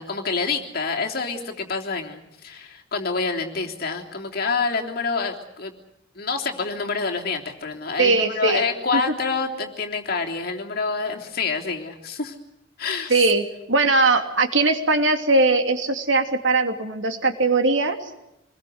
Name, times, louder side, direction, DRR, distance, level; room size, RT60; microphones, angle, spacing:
voice 1, 0.0-5.7 6.2-12.4 12.8-13.3, left 4 dB, 55° left, 1 dB, 3.4 m, -27 dB
voice 2, 8.0-8.6 8.9-9.0 13.1-18.0, right 3 dB, 85° right, 6 dB, 3.0 m, -20 dB
26.5 x 21.0 x 8.0 m, 0.86 s
head